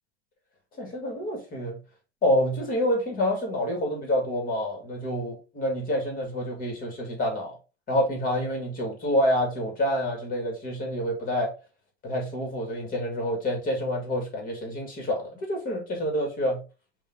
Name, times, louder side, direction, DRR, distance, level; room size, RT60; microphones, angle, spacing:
voice 1, 0.8-1.8 2.2-7.5 7.9-11.5 12.0-16.6, equal, 25° left, 2 dB, 1.8 m, -27 dB
5.4 x 2.7 x 3.6 m, 0.31 s
supercardioid pair, 130°, 31 cm